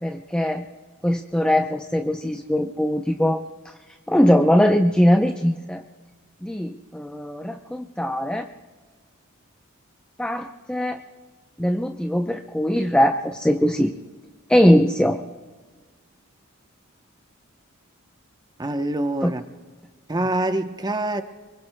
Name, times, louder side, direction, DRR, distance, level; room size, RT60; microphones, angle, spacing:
voice 1, 0.0-0.7 1.0-3.7 4.1-5.8 6.4-8.5 10.2-11.0 11.6-13.9 14.5-15.2 19.2-19.3, equal, 5° left, 0.5 m, -21 dB
voice 2, 18.6-19.4 20.1-21.2, right 2 dB, 20° right, 0.8 m, -25 dB
26.5 x 23.5 x 2.2 m
head